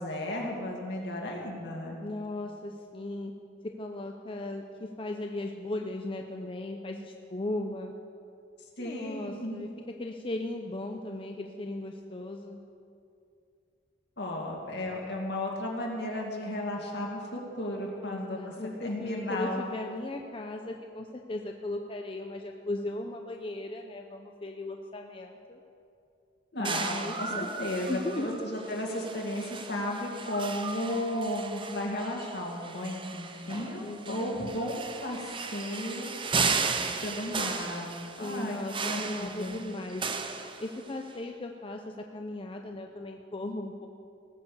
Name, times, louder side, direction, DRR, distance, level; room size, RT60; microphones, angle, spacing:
voice 1, 0.0-2.0 8.8-9.6 14.2-18.4 18.8-19.6 26.5-36.7 37.0-39.6, left 1 dB, 65° left, -1 dB, 2.4 m, -34 dB
voice 2, 2.0-3.3 3.6-7.9 8.8-9.7 10.0-12.6 18.0-25.6 26.6-27.5 27.9-28.4 33.8-34.5 38.2-40.1 40.6-43.9, left 2 dB, 30° left, 3 dB, 0.6 m, -37 dB
sound 1, 26.6-41.1, right 5 dB, 30° right, 0.7 m, -35 dB
18.0 x 6.8 x 7.0 m, 2.6 s
head